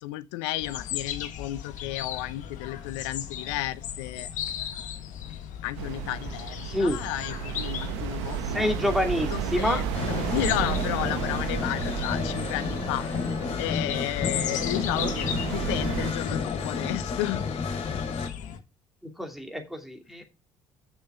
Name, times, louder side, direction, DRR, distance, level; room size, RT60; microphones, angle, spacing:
voice 1, 0.0-4.7 5.6-8.7 9.3-9.8 10.3-15.3 15.5-17.4, left 16 dB, 80° left, 0.7 m, -33 dB
sound 1, 0.6-18.6, left 9 dB, 60° left, 1.4 m, -37 dB
sound 2, 5.8-16.1, right 8 dB, 80° right, 1.3 m, -33 dB
voice 2, 6.7-7.0 8.5-9.8 14.9-15.1 19.2-20.2, left 1 dB, ahead, 2.7 m, -27 dB
sound 3, 9.9-18.3, left 4 dB, 45° left, 3.1 m, -31 dB
7.3 x 6.8 x 5.0 m
hypercardioid pair, 55°, 14 cm